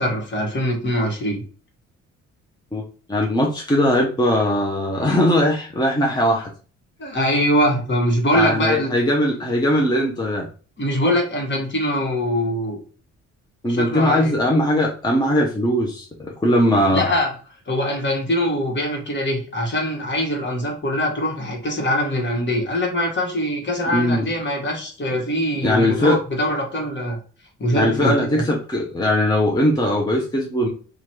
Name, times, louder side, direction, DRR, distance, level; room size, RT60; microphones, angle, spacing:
voice 1, 0.0-1.4 7.0-8.9 10.8-12.8 13.7-14.3 16.9-17.3 17.7-27.2 27.6-28.4, equal, 40° left, 1 dB, 1.5 m, -23 dB
voice 2, 3.1-6.5 8.3-10.5 13.6-17.1 23.9-24.3 25.6-26.2 27.7-30.7, left 1 dB, 15° left, -1 dB, 0.8 m, -20 dB
3.0 x 2.5 x 4.4 m, 0.39 s
cardioid pair, 90°, 30 cm